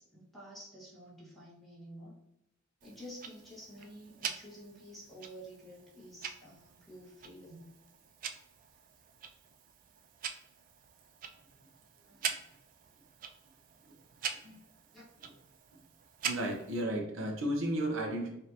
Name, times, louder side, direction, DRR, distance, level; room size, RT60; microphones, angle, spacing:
voice 1, 0.0-2.1 2.8-7.6 12.1-12.3 14.9-15.0, equal, ahead, -8 dB, 1.6 m, -50 dB
Tick-tock, 2.8-16.8, right 7 dB, 40° right, 0.3 m, -44 dB
voice 2, 16.2-18.3, right 1 dB, 75° right, 1 dB, 0.8 m, -33 dB
5.1 x 2.7 x 2.9 m, 0.82 s
head